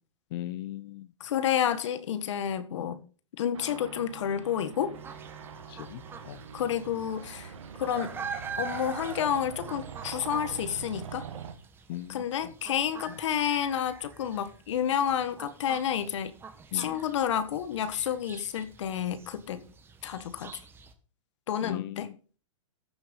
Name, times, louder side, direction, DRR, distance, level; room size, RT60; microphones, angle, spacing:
voice 1, 0.3-1.1 2.8-2.9 5.7-6.4 11.9-12.2 16.7-17.0 21.6-22.1, left 15 dB, 45° left, 0.5 m, -38 dB
voice 2, 1.2-3.0 3.4-4.9 6.5-7.5 7.8-8.1 8.6-11.3 12.1-16.3 16.7-19.7 20.0-20.5 21.5-22.1, left 9 dB, 65° left, 1.5 m, -30 dB
sound 1, 3.5-11.5, right 7 dB, 70° right, 1.8 m, -43 dB
sound 2, 4.9-20.9, right 6 dB, 15° right, 1.3 m, -45 dB
14.0 x 6.1 x 5.3 m
hypercardioid pair, 140°, 16 cm